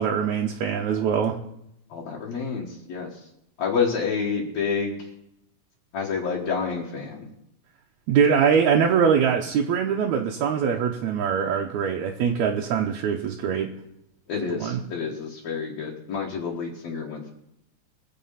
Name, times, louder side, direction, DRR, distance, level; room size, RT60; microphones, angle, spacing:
voice 1, 0.0-1.4 8.1-13.7 14.6-14.8, right 7 dB, 70° right, 1 dB, 2.0 m, -23 dB
voice 2, 1.9-3.3 3.6-5.1 5.9-7.3 14.3-17.3, left 5 dB, 60° left, -3 dB, 2.7 m, -29 dB
21.5 x 7.5 x 5.7 m, 0.82 s
omnidirectional pair, 3.7 m